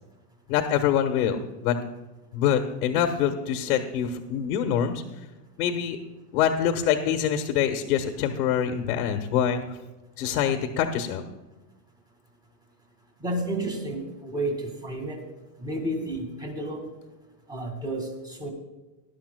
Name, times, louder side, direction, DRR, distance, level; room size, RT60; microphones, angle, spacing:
voice 1, 0.5-1.7 2.3-5.0 5.6-6.0 6.3-9.8 10.2-11.2, left 9 dB, 65° left, 4 dB, 1.3 m, -25 dB
voice 2, 13.2-15.2 15.6-16.9 17.5-18.5, right 1 dB, 10° right, 3 dB, 1.9 m, -31 dB
18.0 x 11.5 x 2.2 m, 1.2 s
supercardioid pair, 145°, 49 cm